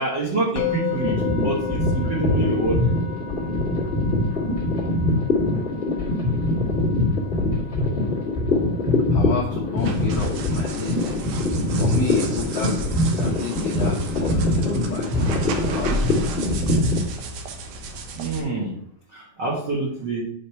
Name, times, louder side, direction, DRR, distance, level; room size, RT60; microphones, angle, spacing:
voice 1, 0.0-3.0 8.1-8.2 18.1-18.7 19.1-20.2, right 2 dB, 85° right, -4 dB, 0.9 m, -26 dB
Musical instrument, 0.6-11.7, left 6 dB, 55° left, 2.6 m, -35 dB
sound 1, 0.9-17.0, left 1 dB, 25° left, 1.7 m, -23 dB
voice 2, 9.1-11.3 11.7-12.8 13.2-16.1, left 5 dB, 75° left, -3 dB, 1.4 m, -31 dB
sound 2, 9.8-18.4, right 2 dB, 70° right, 1.9 m, -34 dB
7.4 x 3.6 x 5.6 m, 0.72 s
omnidirectional pair, 4.3 m